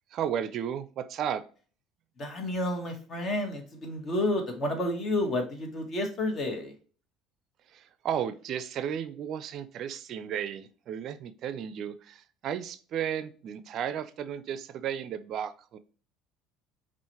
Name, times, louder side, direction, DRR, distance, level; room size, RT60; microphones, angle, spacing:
voice 1, 0.1-1.4 7.7-15.8, right 9 dB, 55° right, 12 dB, 0.4 m, -34 dB
voice 2, 2.2-6.7, left 1 dB, 45° left, 3 dB, 1.4 m, -30 dB
5.5 x 2.5 x 3.0 m, 0.39 s
hypercardioid pair, 65°, 0 cm